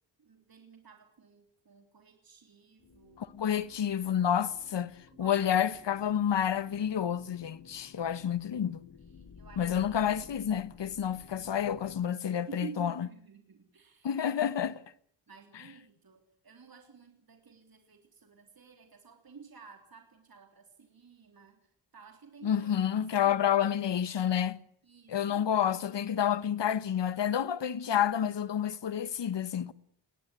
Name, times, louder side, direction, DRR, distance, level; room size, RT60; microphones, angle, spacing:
voice 1, 0.2-3.6 5.1-5.4 9.1-9.8 12.5-14.6 15.3-23.4 24.8-25.8, right 5 dB, 50° right, 3.5 m, -52 dB
sound 1, 2.8-12.0, left 6 dB, 45° left, 6.6 m, -54 dB
voice 2, 3.2-8.8 9.6-13.1 14.0-14.8 22.4-24.6 25.1-29.7, left 9 dB, 70° left, 1.2 m, -29 dB
21.0 x 18.0 x 9.8 m
wide cardioid pair, 85°, 45 cm